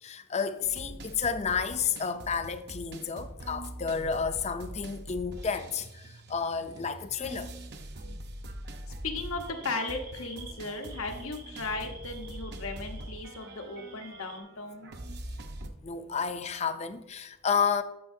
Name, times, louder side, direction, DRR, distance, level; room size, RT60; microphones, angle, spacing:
voice 1, 0.0-7.5 15.8-17.8, left 6 dB, 30° left, 0.5 m, -31 dB
sound 1, 0.6-15.7, right 1 dB, 50° right, 0.8 m, -43 dB
voice 2, 9.0-14.9, left 3 dB, 85° left, 1.1 m, -36 dB
sound 2, 9.2-14.4, right 3 dB, 70° right, 2.7 m, -51 dB
12.0 x 7.1 x 2.7 m
head